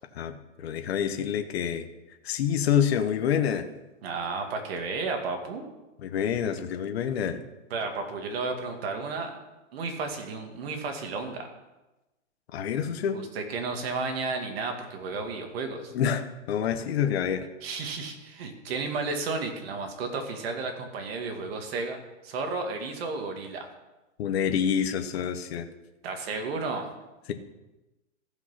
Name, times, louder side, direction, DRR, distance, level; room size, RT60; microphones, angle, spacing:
voice 1, 0.1-1.9 2.2-3.7 6.0-7.4 12.5-13.2 15.9-17.5 24.2-25.7, left 8 dB, 55° left, 7 dB, 1.2 m, -27 dB
voice 2, 4.0-5.6 7.7-9.4 9.7-11.5 13.1-15.9 17.6-22.0 22.2-23.7 26.0-26.9, right 4 dB, 50° right, 4 dB, 2.3 m, -33 dB
15.0 x 5.8 x 5.8 m, 1.0 s
hypercardioid pair, 155°, 38 cm